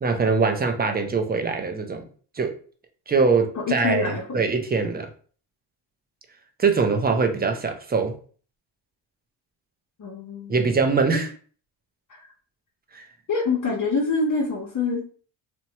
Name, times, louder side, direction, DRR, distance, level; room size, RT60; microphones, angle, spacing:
voice 1, 0.0-2.1 2.4-2.5 3.1-5.1 6.6-8.1 10.5-11.3 12.9-13.1, right 4 dB, 20° right, 0.5 m, -22 dB
voice 2, 3.5-4.2 10.0-10.5 11.1-11.2 12.1-12.3 13.3-15.1, left 3 dB, 40° left, 0.8 m, -25 dB
2.8 x 2.2 x 2.7 m
cardioid pair, 75°, 47 cm